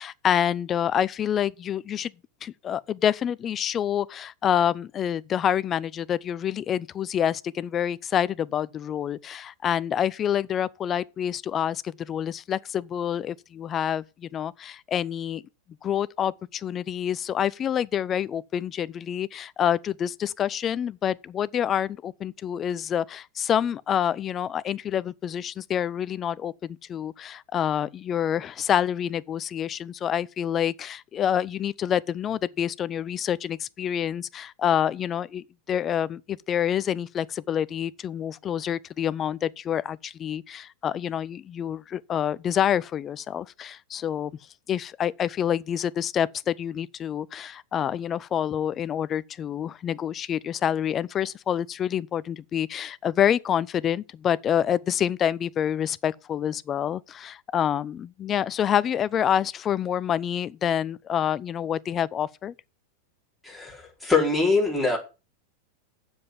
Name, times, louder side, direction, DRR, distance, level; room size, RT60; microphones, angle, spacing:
voice 1, 0.0-2.1 2.4-15.4 15.8-44.3 44.7-62.5, left 9 dB, 25° left, 0.5 m, -27 dB
voice 2, 63.4-65.0, left 3 dB, ahead, 4.8 m, -23 dB
7.7 x 7.2 x 7.4 m
figure-of-eight pair, 90°, 0 cm